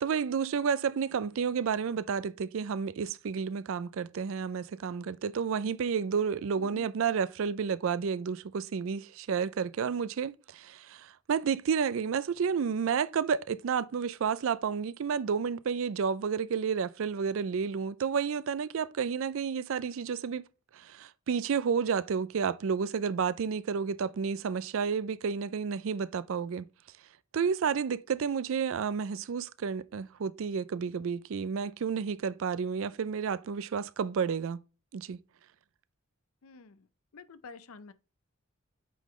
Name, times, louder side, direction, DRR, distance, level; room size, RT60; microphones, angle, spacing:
voice 1, 0.0-20.4 20.7-26.7 27.3-34.6 34.9-35.2, right 6 dB, 65° right, 0.4 m, -31 dB
voice 2, 6.6-6.9 36.4-36.9 37.1-37.9, left 4 dB, 75° left, 0.6 m, -49 dB
8.4 x 3.8 x 3.1 m
head